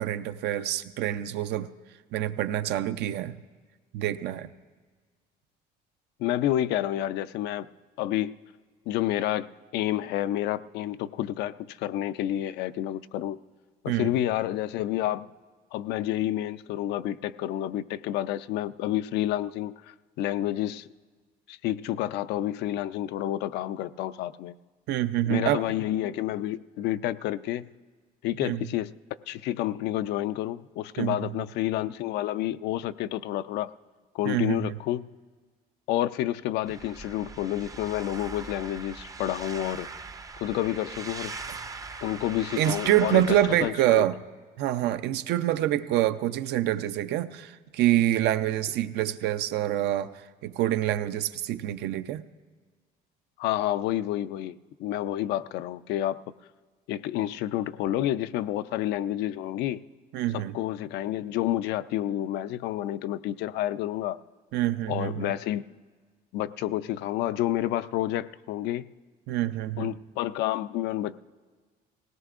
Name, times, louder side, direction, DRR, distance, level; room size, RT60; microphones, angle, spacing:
voice 1, 0.0-1.7 2.1-3.4 3.9-4.5 13.9-14.1 24.9-25.6 28.4-28.6 31.0-31.2 34.3-34.7 41.5-41.6 42.6-44.2 44.6-50.1 50.4-52.2 60.1-60.6 64.5-65.3 69.3-69.9, right 13 dB, 80° right, 11 dB, 0.6 m, -26 dB
voice 2, 6.2-7.7 8.0-8.4 8.9-13.4 13.8-15.3 15.7-20.9 21.5-24.5 25.3-27.7 28.2-28.9 29.3-33.7 34.1-35.1 35.9-39.9 40.4-41.3 42.0-44.0 53.4-56.2 56.9-59.8 60.3-64.2 64.9-65.7 66.3-68.9 69.8-71.2, left 13 dB, 85° left, 13 dB, 0.4 m, -29 dB
sound 1, 36.7-43.7, right 4 dB, 20° right, 0.5 m, -41 dB
19.0 x 17.5 x 2.5 m, 1.5 s
cardioid pair, 110°, 17 cm